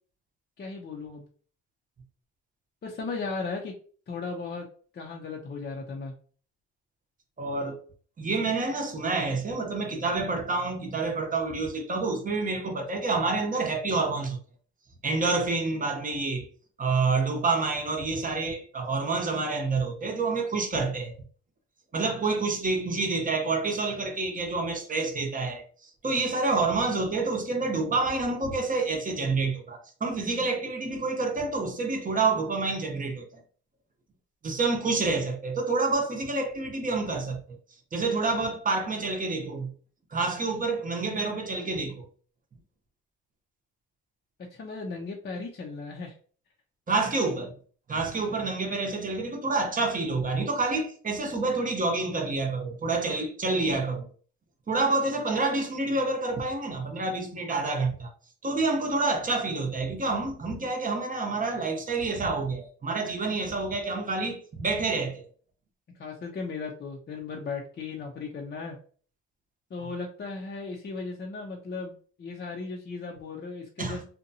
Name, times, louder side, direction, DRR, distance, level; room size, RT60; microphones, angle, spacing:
voice 1, 0.6-1.2 2.8-3.7 4.1-4.6 4.9-6.1 44.5-46.2 48.3-48.5 48.8-48.9 66.0-68.8 69.7-74.0, left 4 dB, 35° left, 0.5 m, -36 dB
voice 2, 7.4-7.8 8.2-14.4 15.0-16.5 16.8-21.1 21.9-33.4 34.4-37.6 37.9-39.7 40.1-42.1 46.9-47.5 47.9-54.1 54.7-58.1 58.4-65.2 73.8-74.1, right 3 dB, 25° right, 0.7 m, -28 dB
2.7 x 2.2 x 2.6 m
cardioid pair, 90°, 30 cm